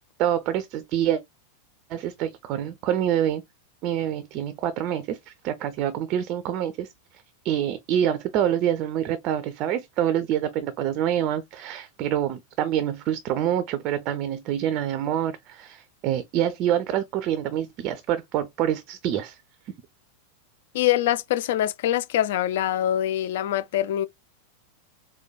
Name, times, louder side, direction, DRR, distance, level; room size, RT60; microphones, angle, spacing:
voice 1, 0.2-1.2 1.9-3.4 3.8-19.4, right 10 dB, 40° right, 0.4 m, -26 dB
voice 2, 20.7-24.1, left 12 dB, 55° left, 0.3 m, -24 dB
4.4 x 2.2 x 2.2 m
figure-of-eight pair, 90°, 0 cm